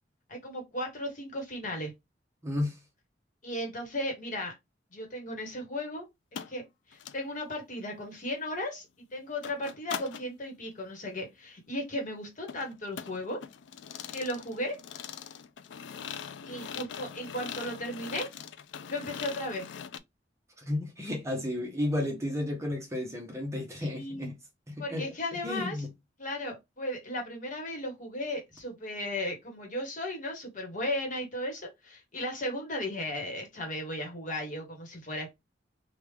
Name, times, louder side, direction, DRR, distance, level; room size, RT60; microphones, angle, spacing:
voice 1, 0.3-1.9 3.4-4.5 4.9-6.0 6.5-6.6 6.9-8.9 9.1-13.4 14.1-14.8 16.4-18.3 18.9-19.6 23.8-24.3 24.8-25.8 26.2-35.3, left 1 dB, 45° left, 1.2 m, -35 dB
voice 2, 2.4-2.8 20.6-24.4 24.7-25.1 25.4-25.9, left 1 dB, 15° right, 0.9 m, -32 dB
sound 1, 6.4-6.5 6.9-7.2 9.4-10.3 12.5-20.0, left 8 dB, 75° left, 0.4 m, -41 dB
3.3 x 2.4 x 3.2 m
head